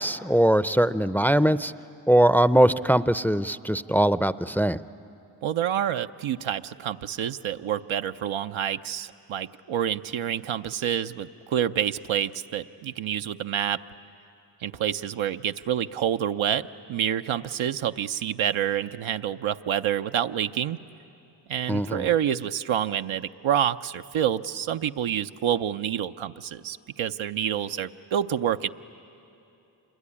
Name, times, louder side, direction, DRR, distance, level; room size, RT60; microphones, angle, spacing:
voice 1, 0.0-1.7 2.1-4.8 21.7-22.1, right 1 dB, 5° left, 15 dB, 0.5 m, -21 dB
voice 2, 5.4-13.8 14.6-20.8 21.5-28.7, right 10 dB, 80° right, 8 dB, 0.7 m, -28 dB
26.5 x 22.0 x 9.9 m, 2.8 s
cardioid pair, 40°, 47 cm